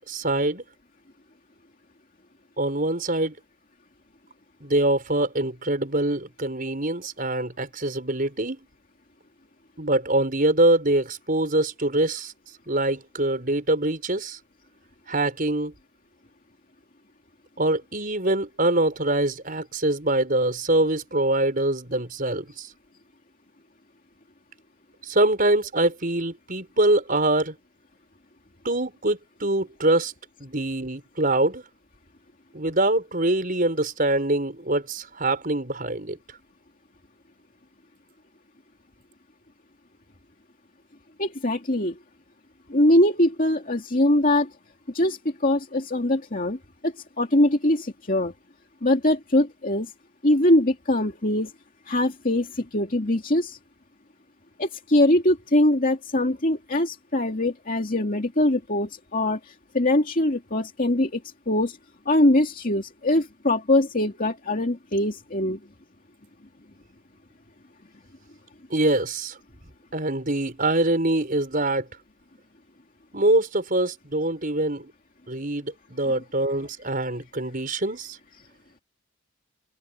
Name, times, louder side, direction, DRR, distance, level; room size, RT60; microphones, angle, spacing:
voice 1, 0.1-0.6 2.6-3.3 4.6-8.6 9.8-12.3 12.7-14.4 15.1-15.7 17.6-22.7 25.1-27.5 28.6-30.1 30.4-31.6 32.5-36.2 68.7-69.3 69.9-71.9 73.1-74.9 75.3-78.2, right 1 dB, 40° right, 5.4 m, -24 dB
voice 2, 41.2-42.0 42.7-44.5 44.9-46.6 46.8-48.3 48.8-49.9 50.2-51.5 51.9-53.6 54.6-61.2 61.5-61.8 62.1-65.6 76.0-76.1, left 1 dB, 40° left, 2.4 m, -22 dB
head